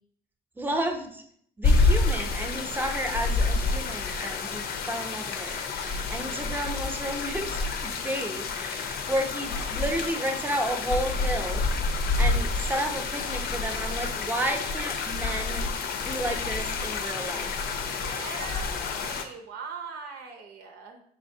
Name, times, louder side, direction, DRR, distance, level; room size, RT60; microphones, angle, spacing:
voice 1, 0.6-1.2 1.6-11.6 12.2-15.6 16.0-17.5, right 1 dB, 10° right, 4 dB, 0.6 m, -32 dB
sound 1, 1.6-19.2, left 3 dB, 65° left, 0.6 m, -28 dB
voice 2, 17.7-21.0, right 4 dB, 75° right, 3 dB, 0.7 m, -41 dB
5.0 x 3.3 x 2.7 m, 0.64 s
cardioid pair, 110°, 17 cm